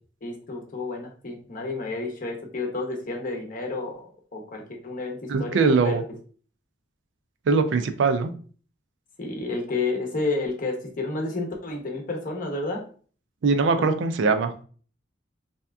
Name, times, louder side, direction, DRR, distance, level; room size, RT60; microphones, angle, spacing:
voice 1, 0.2-4.1 4.3-6.0 9.2-12.8 13.7-13.9, left 3 dB, 45° left, 1 dB, 0.7 m, -30 dB
voice 2, 5.3-6.0 7.5-8.3 13.4-14.5, right 4 dB, 70° right, 9 dB, 0.4 m, -21 dB
3.4 x 2.7 x 2.3 m, 0.42 s
head